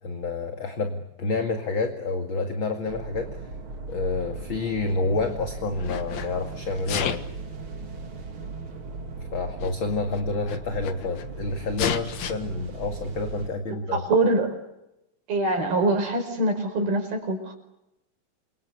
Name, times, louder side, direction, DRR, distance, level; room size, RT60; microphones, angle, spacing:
voice 1, 0.0-3.3 3.9-7.2 9.3-14.0, left 3 dB, 40° left, 5 dB, 2.4 m, -29 dB
sound 1, 2.9-13.5, right 3 dB, 40° right, 3.0 m, -38 dB
Sneeze, 4.3-5.3 5.8-6.3 6.8-7.4 8.3-8.4 9.3-9.4 9.6-9.7 10.1-11.3 11.8-12.3, left 8 dB, 55° left, 2.4 m, -31 dB
voice 2, 13.9-14.6 15.3-17.6, right 2 dB, 80° right, 4 dB, 6.9 m, -24 dB
28.0 x 24.5 x 8.2 m, 0.87 s
omnidirectional pair, 4.2 m